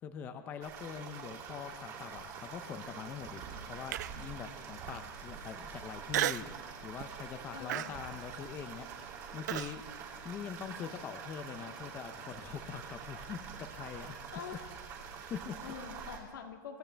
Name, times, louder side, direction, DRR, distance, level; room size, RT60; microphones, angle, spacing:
voice 1, 0.0-6.6 6.8-9.8 10.2-14.1 15.3-15.6, left 8 dB, 20° left, 8 dB, 0.6 m, -43 dB
sound 1, 0.6-16.2, right 6 dB, 30° right, 2.8 m, -46 dB
Human voice, 3.9-4.3 4.9-5.0 6.1-6.6 7.0-7.3 7.7-9.8, right 13 dB, 60° right, 0.4 m, -34 dB
voice 2, 7.5-8.1 14.3-14.7 15.6-16.8, left 7 dB, 80° left, 3 dB, 2.3 m, -46 dB
25.0 x 14.5 x 3.4 m, 1.5 s
supercardioid pair, 165°, 11 cm